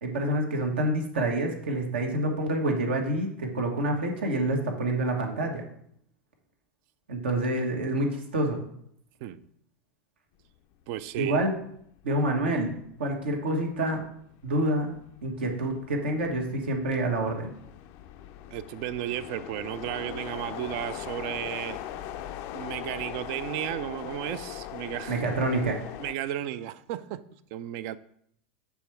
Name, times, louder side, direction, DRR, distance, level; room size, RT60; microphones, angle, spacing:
voice 1, 0.0-5.6 7.1-8.6 11.1-11.6 12.0-12.7 13.0-14.0 14.4-14.9 15.2-17.5 25.1-25.8, right 1 dB, 80° right, 2 dB, 1.2 m, -27 dB
voice 2, 10.9-11.4 18.5-21.8 22.5-25.2 26.0-27.2 27.5-28.0, right 12 dB, 55° right, 14 dB, 0.4 m, -34 dB
sound 1, 11.2-11.4 11.8-26.2, left 11 dB, 55° left, 0.4 m, -41 dB
7.0 x 3.6 x 4.4 m, 0.69 s
hypercardioid pair, 95°, 6 cm